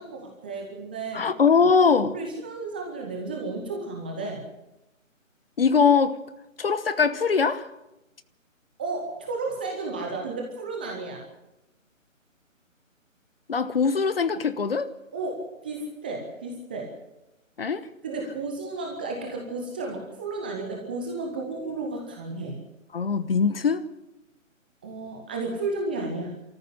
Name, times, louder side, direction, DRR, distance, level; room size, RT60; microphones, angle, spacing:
voice 1, 0.0-1.3 1.8-4.4 8.8-11.3 15.1-17.0 18.0-22.6 24.8-26.3, right 3 dB, 5° right, 0.8 m, -33 dB
voice 2, 1.1-2.2 5.6-6.2 6.6-7.7 13.5-14.9 17.6-17.9 22.9-23.8, left 5 dB, 45° left, 1.1 m, -22 dB
25.0 x 14.0 x 7.8 m
figure-of-eight pair, 150°, 40 cm